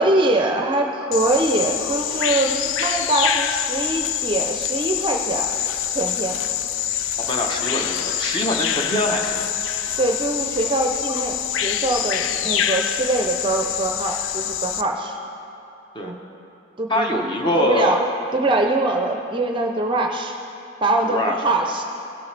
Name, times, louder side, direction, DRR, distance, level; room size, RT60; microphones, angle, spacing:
voice 1, 0.0-5.5 5.9-6.4 10.0-15.2 16.0-16.2 16.8-17.2 17.5-18.0 18.3-20.4 20.8-21.8, right 2 dB, 25° right, 3 dB, 0.5 m, -23 dB
Bird vocalization bird call bird song, 1.1-14.8, left 10 dB, 80° left, 0.4 m, -25 dB
voice 2, 7.2-9.4 15.9-16.1 16.9-18.0 21.0-21.4, left 1 dB, 25° left, 1 dB, 0.8 m, -23 dB
16.5 x 6.9 x 3.3 m, 2.8 s
head